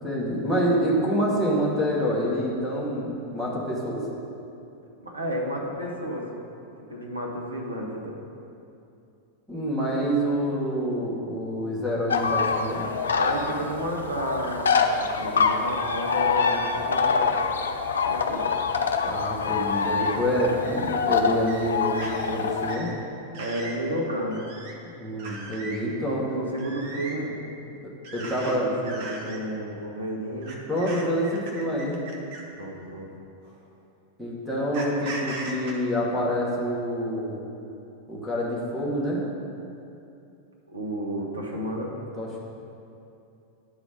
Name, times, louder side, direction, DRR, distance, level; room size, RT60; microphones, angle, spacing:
voice 1, 0.0-4.1 9.5-12.9 19.0-22.9 25.0-26.2 28.1-28.7 30.7-32.0 34.2-37.4 38.1-39.2 42.2-42.4, equal, 5° right, -6 dB, 1.9 m, -27 dB
voice 2, 5.0-6.3 6.8-8.2 13.1-17.2 18.0-18.5 23.4-24.4 26.0-27.4 28.1-30.6 32.6-33.1 40.7-41.9, equal, 75° right, -1 dB, 1.1 m, -32 dB
sound 1, 12.1-22.8, left 5 dB, 65° left, 0.4 m, -25 dB
sound 2, 20.0-20.1 20.6-20.8 21.5-21.7 22.0-22.2 22.7-22.9 23.3-23.8 24.3-24.7 25.2-25.8 26.6-27.2 28.0-28.6 28.8-29.4 30.4-32.5 33.4-33.6 34.7-35.7, right 3 dB, 50° right, 1.0 m, -38 dB
10.0 x 4.1 x 5.2 m, 2.7 s
figure-of-eight pair, 90°, 0 cm